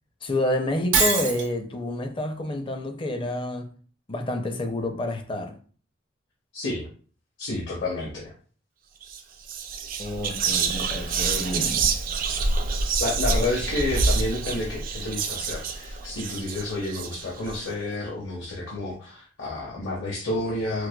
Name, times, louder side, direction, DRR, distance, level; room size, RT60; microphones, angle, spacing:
voice 1, 0.2-3.6 4.1-5.5 10.0-11.9, left 1 dB, 25° left, 0.5 m, -29 dB
Shatter, 0.9-1.5, right 4 dB, 80° right, 0.9 m, -22 dB
voice 2, 6.5-6.9 7.4-8.3 13.0-20.9, left 2 dB, 70° left, 0.9 m, -30 dB
Whispering, 9.0-9.2 9.5-17.6, right 4 dB, 45° right, 0.3 m, -27 dB
4.5 x 2.1 x 2.2 m
head